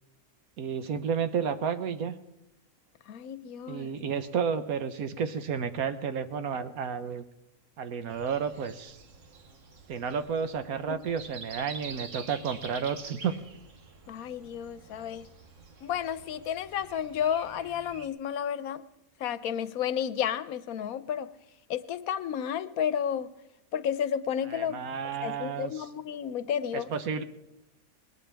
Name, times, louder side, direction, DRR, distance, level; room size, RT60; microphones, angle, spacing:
voice 1, 0.6-2.2 3.7-7.2 7.8-9.0 9.9-13.3 24.5-25.9 26.7-27.2, right 6 dB, 85° right, 10 dB, 1.4 m, -31 dB
voice 2, 3.1-3.9 10.9-11.0 14.1-15.3 15.8-18.8 19.2-21.3 21.7-23.3 23.7-24.8 25.2-26.9, left 9 dB, 85° left, 15 dB, 1.2 m, -32 dB
Breathing, 8.1-18.1, right 4 dB, 60° right, 1.6 m, -47 dB
20.0 x 19.0 x 3.4 m, 0.89 s
omnidirectional pair, 1.5 m